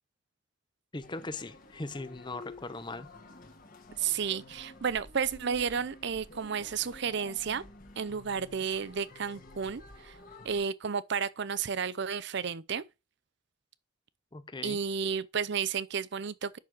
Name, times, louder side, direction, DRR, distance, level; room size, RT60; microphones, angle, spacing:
voice 1, 0.9-3.1 14.3-14.8, left 2 dB, 25° left, 0.7 m, -39 dB
sound 1, 1.0-10.6, left 2 dB, 45° left, 1.5 m, -51 dB
voice 2, 4.0-7.6 8.0-10.2 10.4-12.8 14.6-16.6, right 6 dB, 60° right, 0.6 m, -32 dB
8.4 x 6.2 x 4.6 m
head